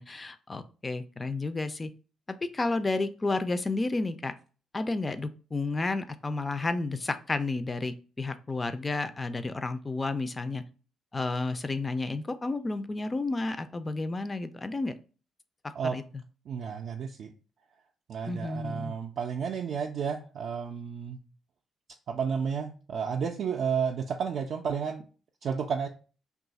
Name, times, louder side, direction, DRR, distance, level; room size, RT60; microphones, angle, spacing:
voice 1, 0.0-1.9 2.5-4.3 4.7-10.6 11.1-14.9 15.9-16.0 18.3-18.9, left 3 dB, 25° left, 0.3 m, -31 dB
voice 2, 16.5-17.3 18.1-21.2 22.1-25.0 25.4-25.9, right 6 dB, 65° right, 0.3 m, -32 dB
2.7 x 2.3 x 3.9 m
cardioid pair, 90°, 0 cm